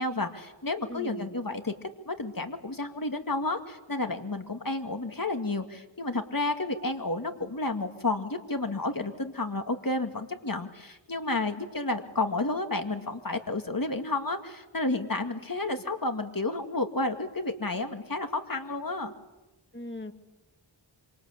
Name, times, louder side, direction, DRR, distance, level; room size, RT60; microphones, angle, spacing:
voice 1, 0.0-1.7 2.1-19.1, left 2 dB, 50° left, 6 dB, 2.3 m, -31 dB
voice 2, 0.9-1.3 19.7-20.1, left 1 dB, 25° left, 6 dB, 2.4 m, -39 dB
26.5 x 26.0 x 8.3 m, 1.0 s
wide cardioid pair, 45°, 45 cm